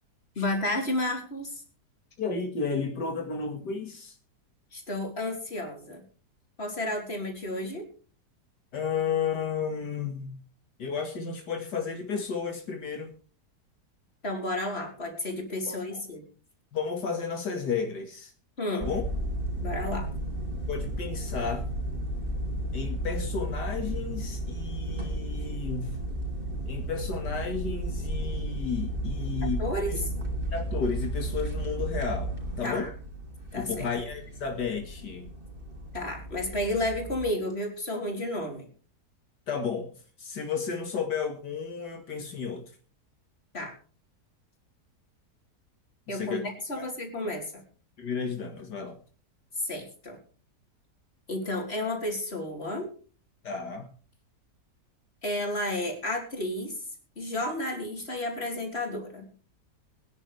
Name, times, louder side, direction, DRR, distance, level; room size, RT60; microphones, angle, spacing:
voice 1, 0.4-1.6 4.7-6.0 6.6-7.9 14.2-16.2 18.6-18.9 19.6-20.1 29.6-30.0 32.6-32.9 33.5-33.9 35.9-38.7 43.5-43.7 46.1-47.6 49.6-50.2 51.3-52.9 55.2-56.8 57.2-59.2, left 1 dB, 35° left, 2 dB, 4.3 m, -32 dB
voice 2, 2.2-4.2 8.7-10.4 10.8-13.1 15.7-16.0 16.7-18.3 18.7-19.0 20.7-21.7 22.7-26.0 26.7-29.6 29.9-30.0 30.5-32.9 33.5-35.3 39.5-39.9 40.2-42.7 46.1-46.4 46.8-46.9 48.0-49.0 53.4-53.9, left 5 dB, 80° left, 4 dB, 2.6 m, -33 dB
sound 1, 18.8-37.3, right 1 dB, 30° right, 4.1 m, -33 dB
23.5 x 10.5 x 3.5 m, 0.39 s
omnidirectional pair, 1.8 m